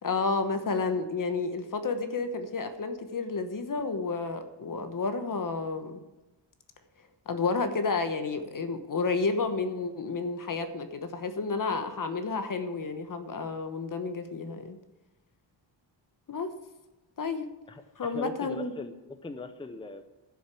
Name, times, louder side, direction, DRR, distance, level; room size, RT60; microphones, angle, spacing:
voice 1, 0.0-6.0 7.3-14.8 16.3-16.5 17.2-17.5 18.0-18.7, left 4 dB, 45° left, 8 dB, 1.1 m, -31 dB
voice 2, 17.7-20.0, left 2 dB, 10° left, 8 dB, 0.7 m, -40 dB
11.5 x 6.6 x 8.4 m, 1.0 s
wide cardioid pair, 155°, 45 cm